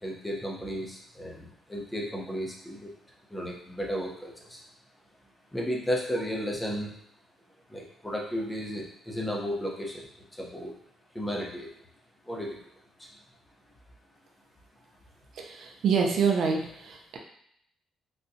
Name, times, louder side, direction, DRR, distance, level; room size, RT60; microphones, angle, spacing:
voice 1, 0.0-2.9 3.3-4.6 5.5-6.9 7.7-10.1 10.3-10.7 11.1-11.7 12.3-12.6 13.0-13.1, equal, 10° left, -2 dB, 0.8 m, -33 dB
voice 2, 15.4-17.2, right 6 dB, 65° right, 1 dB, 0.5 m, -26 dB
3.9 x 2.2 x 2.6 m, 0.70 s
cardioid pair, 90°, 0 cm